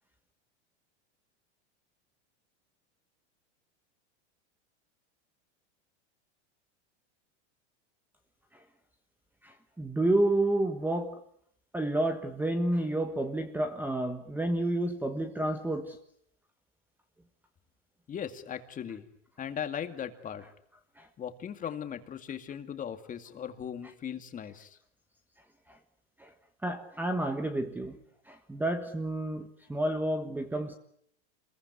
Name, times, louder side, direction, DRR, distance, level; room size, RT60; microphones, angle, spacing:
voice 1, 9.4-11.2 11.7-16.0 21.0-21.1 25.7-25.8 26.2-26.3 26.6-28.0 28.3-30.7, right 1 dB, 5° right, 1.3 m, -30 dB
voice 2, 18.1-19.1 19.4-20.4 21.2-24.8, left 8 dB, 25° left, 2.3 m, -38 dB
28.0 x 22.0 x 9.6 m
supercardioid pair, 140°, 35 cm